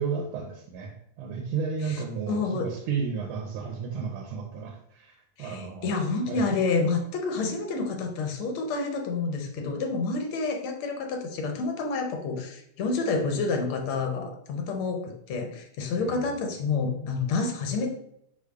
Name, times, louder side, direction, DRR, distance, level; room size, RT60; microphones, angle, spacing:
voice 1, 0.0-6.0 6.3-6.5 16.0-16.3, right 5 dB, 85° right, 2 dB, 1.5 m, -33 dB
voice 2, 2.3-2.7 5.4-17.9, left 4 dB, 80° left, 3 dB, 1.5 m, -29 dB
4.8 x 4.5 x 2.3 m, 0.72 s
omnidirectional pair, 2.4 m